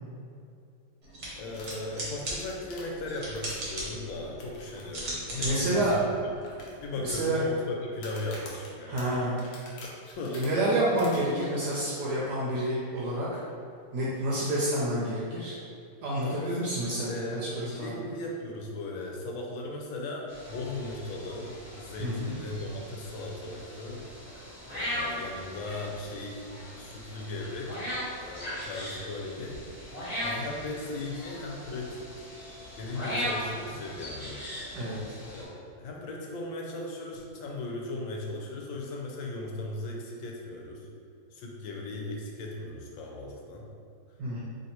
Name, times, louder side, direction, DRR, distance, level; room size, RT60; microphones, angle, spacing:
sound 1, 1.0-7.1, right 1 dB, 45° right, 1.1 m, -39 dB
voice 1, 1.4-6.1 6.8-9.0 9.8-9.9 10.2-10.4 16.2-16.6 17.1-24.0 24.7-26.5 26.8-27.8 28.2-29.6 30.2-32.3 32.8-34.4 35.3-40.9 41.3-43.6, left 2 dB, 85° left, -1 dB, 1.4 m, -37 dB
sound 2, 1.5-3.8 4.4-4.8 5.1-5.2 5.7-5.8 6.4-7.2 7.9-10.5 11.0-11.2, left 2 dB, 60° left, 1.1 m, -47 dB
voice 2, 5.4-5.9 7.0-7.4 8.9-9.3 10.3-13.4 13.9-15.5 16.0-17.9 22.0-22.4 34.8-35.0 44.2-44.4, right 1 dB, 70° right, -6 dB, 1.1 m, -29 dB
sound 3, 20.3-35.4, equal, 30° left, 0.8 m, -39 dB
3.2 x 2.7 x 4.2 m, 2.4 s
omnidirectional pair, 2.1 m